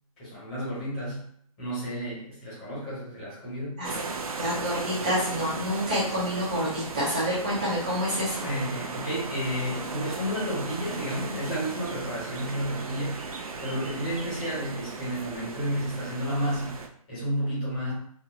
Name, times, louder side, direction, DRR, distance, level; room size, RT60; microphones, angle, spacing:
voice 1, 0.2-1.3 1.6-3.8 8.4-13.2 13.6-16.8 17.1-17.9, equal, 15° left, -10 dB, 1.3 m, -31 dB
sound 1, 3.8-16.9, right 4 dB, 75° right, 0.6 m, -36 dB
voice 2, 4.3-8.5, equal, 15° right, -8 dB, 0.7 m, -28 dB
2.9 x 2.7 x 2.7 m, 0.66 s
hypercardioid pair, 180°, 19 cm